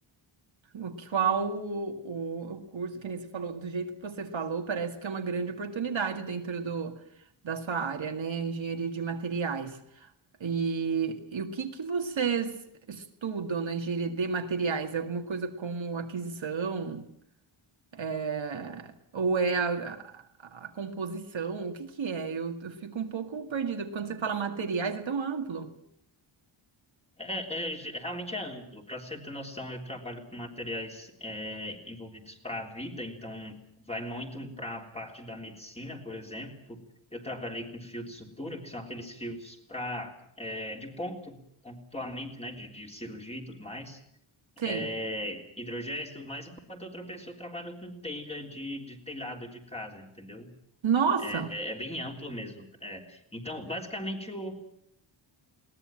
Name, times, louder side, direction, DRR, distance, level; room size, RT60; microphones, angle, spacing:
voice 1, 0.7-7.0 7.4-9.8 10.4-12.6 12.9-17.0 17.9-20.2 20.5-25.7 44.6-44.9 50.8-51.5, right 5 dB, 65° right, 2.1 m, -31 dB
voice 2, 27.2-36.8 37.1-41.4 41.6-44.0 44.6-50.5 51.2-54.5, left 1 dB, 10° left, 3.6 m, -38 dB
21.5 x 18.5 x 8.9 m
wide cardioid pair, 135°, 49 cm